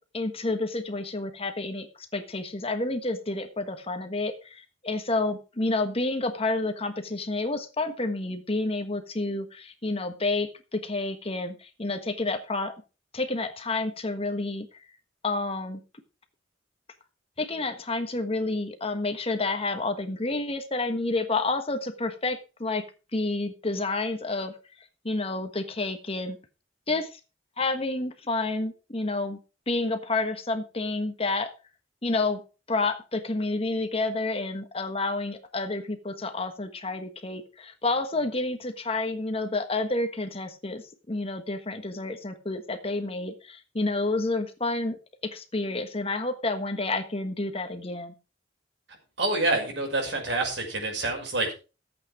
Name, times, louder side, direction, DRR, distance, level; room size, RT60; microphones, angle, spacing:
voice 1, 0.1-12.7 13.1-14.7 15.2-15.8 17.4-22.8 23.1-24.5 25.0-26.4 26.9-27.2 27.6-29.4 29.7-31.5 32.0-32.4 32.7-44.9 45.2-48.1, left 2 dB, 30° left, 8 dB, 1.3 m, -29 dB
voice 2, 49.2-51.5, right 2 dB, 65° right, 2 dB, 6.0 m, -27 dB
14.0 x 8.5 x 4.9 m, 0.33 s
head